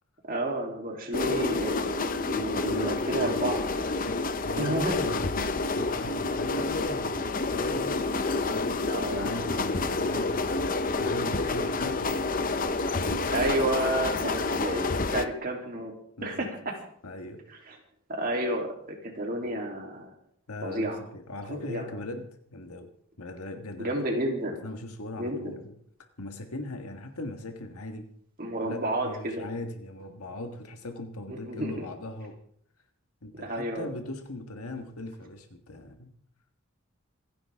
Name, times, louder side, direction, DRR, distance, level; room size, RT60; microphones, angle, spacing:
voice 1, 0.3-3.6 4.6-5.0 8.9-9.6 13.3-14.8 15.1-15.9 16.2-16.8 17.7-17.8 18.1-20.1 20.6-21.0 21.5-21.8 23.8-24.6 25.2-25.5 28.4-29.4 31.3-31.9 33.4-33.9, right 1 dB, 40° right, 0 dB, 3.2 m, -31 dB
sound 1, 1.1-15.3, left 3 dB, 40° left, 0.7 m, -29 dB
voice 2, 2.4-3.6 3.9-8.0 8.5-12.3 14.1-14.3 16.2-16.5 17.0-17.4 20.5-22.9 23.2-24.0 24.6-25.8 26.2-28.1 28.6-32.4 33.2-36.1, left 1 dB, 85° left, 5 dB, 1.6 m, -39 dB
27.0 x 10.5 x 3.6 m, 0.65 s
head